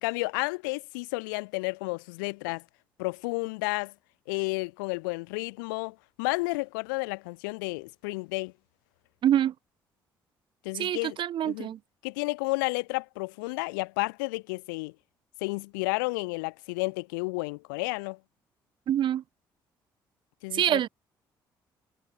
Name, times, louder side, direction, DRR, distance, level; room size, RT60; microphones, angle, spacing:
voice 1, 0.0-2.6 3.0-3.9 4.3-8.5 10.6-11.2 11.4-11.7 12.0-14.9 15.4-18.2 20.4-20.8, left 27 dB, 65° left, 0.5 m, -31 dB
voice 2, 9.2-9.5 10.7-11.8 18.9-19.2 20.5-20.9, right 11 dB, 45° right, 0.7 m, -25 dB
figure-of-eight pair, 45°, 11 cm